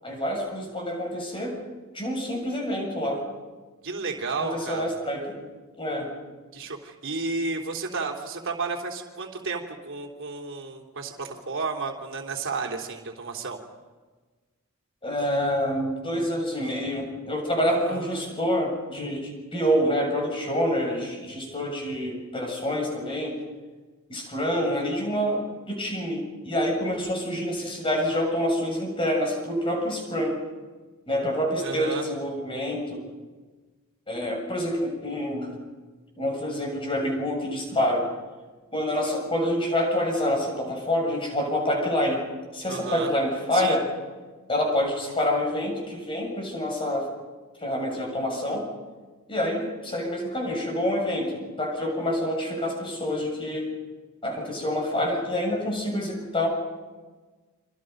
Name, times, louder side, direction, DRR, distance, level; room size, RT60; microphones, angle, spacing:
voice 1, 0.0-1.6 1.9-3.3 4.4-5.4 5.8-6.1 15.0-23.4 24.1-30.4 31.1-33.0 34.1-35.6 36.2-38.1 38.7-42.2 42.5-43.9 44.5-47.1 47.6-48.7 49.3-53.7 54.2-56.5, equal, 25° left, 1 dB, 7.1 m, -27 dB
voice 2, 3.8-4.9 6.5-13.6 17.7-18.3 31.6-32.1 42.7-43.1 43.5-43.7, right 4 dB, 60° right, 1 dB, 3.5 m, -32 dB
29.5 x 25.5 x 5.4 m, 1.3 s
head